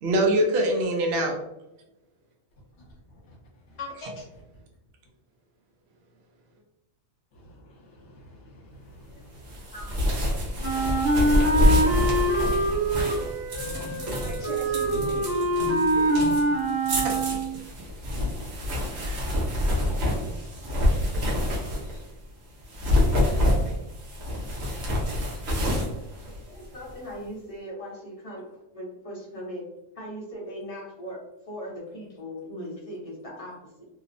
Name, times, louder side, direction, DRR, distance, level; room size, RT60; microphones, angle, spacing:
voice 1, 0.0-1.4 4.0-4.1 17.0-17.1 18.9-19.3, right 1 dB, 65° right, 1 dB, 0.7 m, -24 dB
voice 2, 3.8-4.4 7.5-7.6 8.0-9.4, left 3 dB, 70° left, -2 dB, 1.0 m, -43 dB
sound 1, 9.5-22.1 22.6-26.9, left 1 dB, 80° right, 1.2 m, -27 dB
Wind instrument woodwind instrument, 10.6-17.6, right 1 dB, 50° right, 1.2 m, -25 dB
voice 3, 13.9-16.2 26.5-29.7 29.9-33.9, equal, 35° left, -5 dB, 0.6 m, -39 dB
2.8 x 2.0 x 2.5 m, 0.91 s
omnidirectional pair, 1.3 m